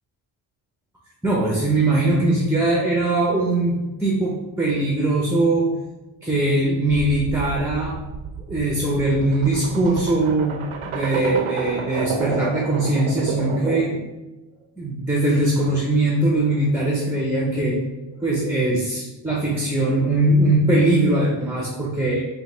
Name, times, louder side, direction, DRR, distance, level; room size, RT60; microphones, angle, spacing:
voice 1, 1.2-5.7 6.2-8.0 8.5-10.6 10.9-13.9 14.8-17.8 18.2-22.2, right 2 dB, 5° right, -3 dB, 0.5 m, -21 dB
sound 1, 7.0-14.1, right 5 dB, 80° right, 0.6 m, -30 dB
3.3 x 2.5 x 3.8 m, 1.0 s
cardioid pair, 95°, 50 cm